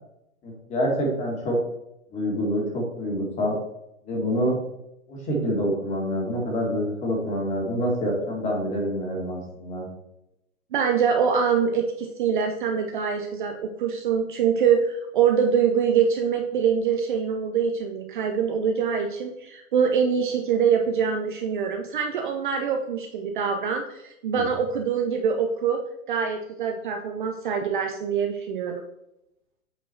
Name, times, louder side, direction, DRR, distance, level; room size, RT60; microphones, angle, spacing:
voice 1, 0.4-1.6 2.1-3.5 4.0-4.6 5.1-9.9 24.3-24.4, equal, 15° left, -1 dB, 2.1 m, -26 dB
voice 2, 10.7-25.8 26.1-28.8, right 7 dB, 35° right, 4 dB, 0.7 m, -24 dB
7.8 x 4.5 x 4.5 m, 0.85 s
hypercardioid pair, 140°, 43 cm